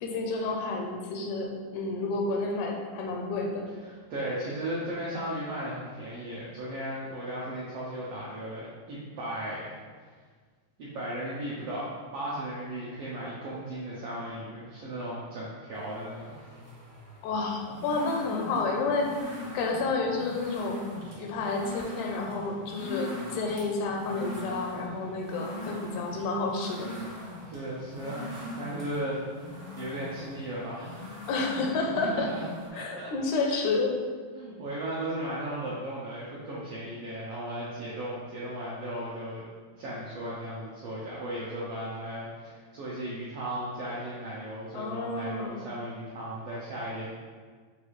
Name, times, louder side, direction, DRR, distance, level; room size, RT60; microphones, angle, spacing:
voice 1, 0.0-3.7 17.2-19.1 19.5-20.8 21.2-26.9 31.3-32.3 32.7-33.9 44.7-45.6, left 3 dB, 85° left, 1 dB, 2.0 m, -30 dB
voice 2, 3.9-9.7 10.8-16.3 18.0-18.2 27.5-28.3 28.5-31.1 31.9-32.5 32.7-33.1 33.4-33.6 34.3-39.5 39.8-47.1, right 1 dB, 80° right, -7 dB, 1.3 m, -36 dB
sound 1, 15.8-32.7, left 1 dB, 65° right, 0.7 m, -41 dB
6.3 x 2.4 x 3.0 m, 1.6 s
omnidirectional pair, 3.4 m